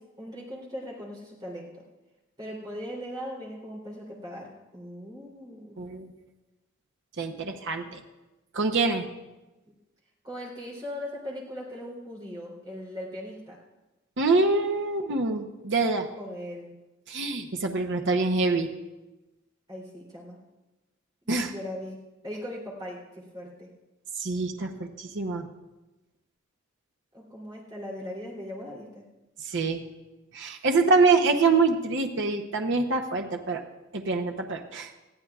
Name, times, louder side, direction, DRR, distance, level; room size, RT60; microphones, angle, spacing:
voice 1, 0.0-1.8 2.4-5.8 9.6-9.7 10.2-13.6 16.2-16.7 19.7-20.4 21.5-22.0 22.2-23.7 27.1-29.0, equal, 20° right, -4 dB, 3.2 m, -39 dB
voice 2, 5.8-6.1 7.2-8.0 8.5-9.1 14.2-16.1 17.1-18.7 21.3-21.5 24.2-25.4 29.4-29.8 30.3-33.6 33.9-34.9, right 3 dB, 60° right, 3 dB, 0.8 m, -25 dB
20.0 x 14.0 x 2.4 m, 1.1 s
head